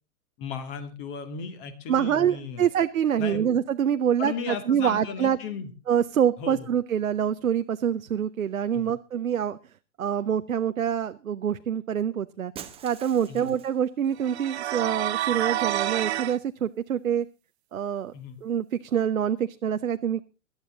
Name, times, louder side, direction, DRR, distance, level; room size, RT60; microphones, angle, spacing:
voice 1, 0.4-2.7 3.2-3.5 4.2-5.7 6.4-6.7 8.7-8.9 13.3-13.5 18.1-18.4, left 6 dB, 40° left, 10 dB, 2.4 m, -36 dB
voice 2, 1.9-5.4 5.9-9.6 10.0-12.5 12.8-17.3 17.7-18.1 18.4-20.2, right 9 dB, 75° right, 11 dB, 0.7 m, -26 dB
Shatter, 12.5-13.9, right 9 dB, 15° right, 1.0 m, -44 dB
sound 1, 14.2-16.4, right 13 dB, 50° right, 0.9 m, -28 dB
17.5 x 12.0 x 3.8 m, 0.31 s
figure-of-eight pair, 105°, 42 cm